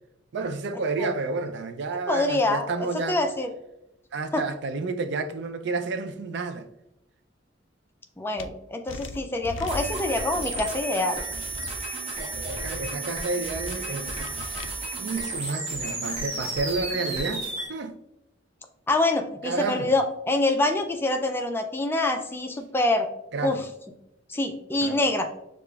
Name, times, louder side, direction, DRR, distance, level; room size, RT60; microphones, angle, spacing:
voice 1, 0.3-3.2 4.1-6.7 12.2-14.1 14.4-14.7 15.0-17.9 19.4-19.9 23.3-23.6 24.8-25.0, right 3 dB, 60° right, 0.4 m, -30 dB
voice 2, 2.1-3.5 4.3-4.4 8.2-11.2 18.9-23.1 23.4-23.7 24.3-25.3, left 2 dB, 10° left, 0.3 m, -25 dB
sound 1, 8.4-8.5 8.9-10.8 11.3-11.8 12.3-12.9 13.4-14.7, left 3 dB, 85° left, 0.4 m, -39 dB
sound 2, 9.7-17.7, right 3 dB, 35° right, 1.0 m, -33 dB
6.6 x 2.4 x 2.3 m
head